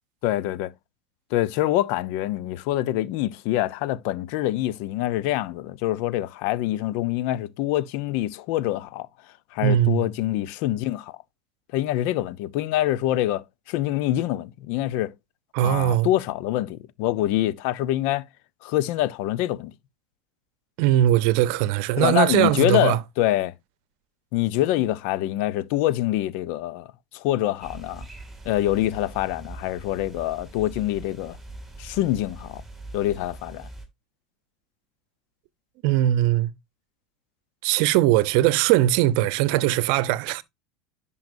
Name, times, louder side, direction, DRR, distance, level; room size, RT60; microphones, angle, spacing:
voice 1, 0.2-0.7 1.3-9.1 9.5-11.1 11.7-15.1 15.6-18.3 18.6-19.7 22.0-23.5 24.3-28.1 28.4-31.4 31.8-32.6 32.9-33.7, left 14 dB, 65° left, 0.7 m, -25 dB
voice 2, 9.6-10.1 15.5-16.1 20.8-23.0 35.8-36.5 37.6-40.4, right 14 dB, 65° right, 0.7 m, -20 dB
sound 1, 27.6-33.9, right 2 dB, 5° right, 2.9 m, -42 dB
10.5 x 5.6 x 2.6 m
supercardioid pair, 105°, 3 cm